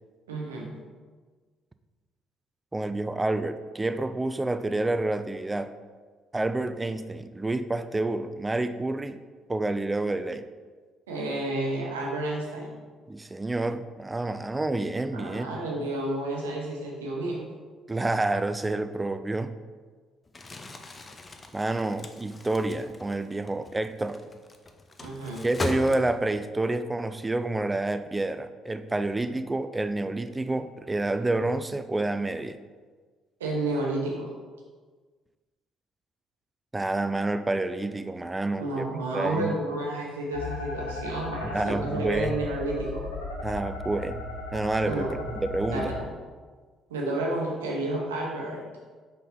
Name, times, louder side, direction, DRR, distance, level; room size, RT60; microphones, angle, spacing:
voice 1, 0.3-0.7 11.1-12.7 15.1-17.5 25.0-25.5 33.4-34.3 38.6-43.0 44.9-45.1 45.6-46.1 46.9-48.6, right 2 dB, 85° right, -2 dB, 1.1 m, -31 dB
voice 2, 2.7-5.7 6.3-9.2 9.5-10.5 13.1-15.5 15.8-15.9 17.9-19.5 21.5-24.2 25.4-32.6 36.7-38.9 39.1-39.6 41.5-42.4 43.4-44.2 44.5-45.1 45.4-45.9, right 2 dB, 20° right, 11 dB, 0.4 m, -28 dB
Crumpling crinkling, 20.3-26.5, left 2 dB, 30° left, 0.7 m, -39 dB
sound 1, 40.3-45.9, left 2 dB, 90° left, 0.8 m, -36 dB
5.6 x 5.1 x 3.7 m, 1.5 s
hypercardioid pair, 50°, 0 cm